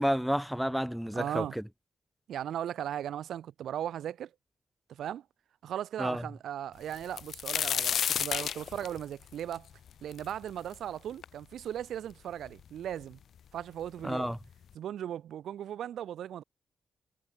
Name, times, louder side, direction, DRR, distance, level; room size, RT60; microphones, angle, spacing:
voice 1, 0.0-1.6 6.0-6.2 14.0-14.4, equal, ahead, 0.8 m, -30 dB
voice 2, 1.1-1.6 2.3-4.3 4.9-5.2 5.6-9.7 10.0-13.2 13.5-14.3 14.7-16.4, right 10 dB, 85° right, 2.6 m, -37 dB
sound 1, 6.9-10.7 11.2-11.3 12.1-12.2 12.5-13.1 14.0-14.1 14.5-14.7, left 8 dB, 75° left, 1.8 m, -32 dB
cardioid pair, 70°, 0 cm